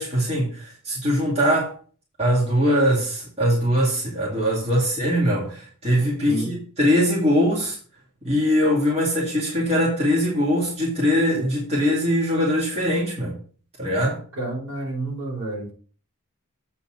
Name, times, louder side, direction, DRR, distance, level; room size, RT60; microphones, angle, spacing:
voice 1, 0.0-1.7 2.2-7.8 8.2-13.4 13.8-14.2, equal, 30° right, 2.3 m, -22 dB
voice 2, 14.3-15.7, right 2 dB, 65° right, 4.4 m, -29 dB
8.2 x 4.2 x 6.0 m
head